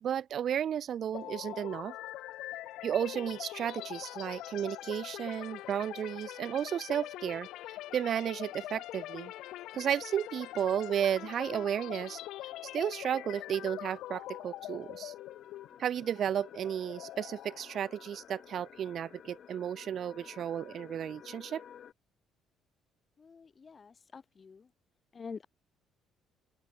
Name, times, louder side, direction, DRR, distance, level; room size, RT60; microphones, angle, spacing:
voice 1, 0.0-2.0 2.8-9.3 9.7-12.2 12.6-15.1 15.8-21.6, right 9 dB, 45° right, 0.4 m, -33 dB
sound 1, 1.1-18.9, left 15 dB, 75° left, 1.1 m, -44 dB
sound 2, 10.1-21.9, left 9 dB, 45° left, 4.0 m, -55 dB
voice 2, 23.2-24.7 25.1-25.4, left 5 dB, 25° left, 3.4 m, -47 dB
open air
cardioid pair, 150°, 0 cm